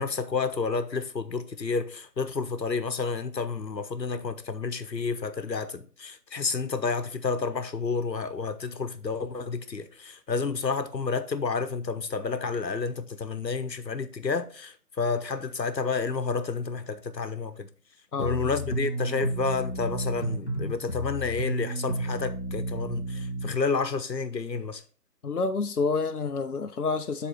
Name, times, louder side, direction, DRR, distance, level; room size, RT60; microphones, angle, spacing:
voice 1, 0.0-17.7 18.2-24.8, left 4 dB, 90° left, 1.0 m, -30 dB
voice 2, 18.1-18.6 25.2-27.3, left 4 dB, 65° left, 0.6 m, -29 dB
sound 1, 18.2-23.5, right 1 dB, 45° left, 1.0 m, -32 dB
7.2 x 3.9 x 5.0 m
figure-of-eight pair, 175°, 49 cm